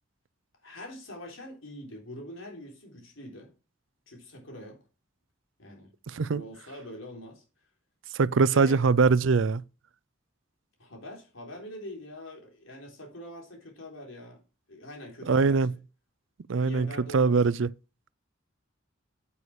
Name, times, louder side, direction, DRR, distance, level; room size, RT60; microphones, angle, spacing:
voice 1, 0.6-3.5 4.1-4.8 5.6-7.4 8.5-8.8 10.8-14.4 14.7-15.8 16.6-17.4, left 1 dB, 85° left, 3.9 m, -44 dB
voice 2, 6.1-6.4 8.1-9.6 15.3-15.7 16.5-17.7, right 4 dB, 70° right, 0.5 m, -23 dB
9.4 x 8.5 x 4.9 m
head